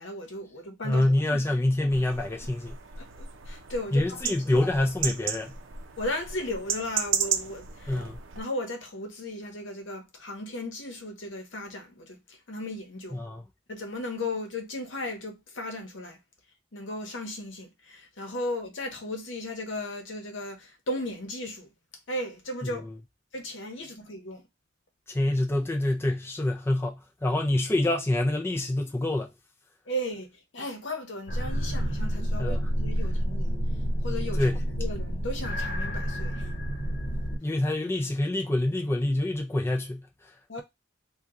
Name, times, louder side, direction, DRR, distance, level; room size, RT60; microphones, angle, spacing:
voice 1, 0.0-1.4 3.0-4.2 4.5-4.7 6.0-8.0 8.3-13.2 13.7-16.2 16.7-21.7 22.1-22.9 23.3-24.5 29.9-33.6 34.0-34.5 34.8-36.5 40.5-40.6, left 1 dB, 70° left, 0.9 m, -36 dB
voice 2, 0.8-2.8 3.9-5.5 7.9-8.2 13.1-13.4 25.1-29.3 32.4-32.6 34.3-34.6 37.4-40.3, left 1 dB, 10° left, 0.4 m, -26 dB
sound 1, 1.9-8.4, right 7 dB, 80° right, 0.6 m, -34 dB
sound 2, 31.3-37.4, equal, 45° left, 1.2 m, -29 dB
2.9 x 2.3 x 3.5 m
head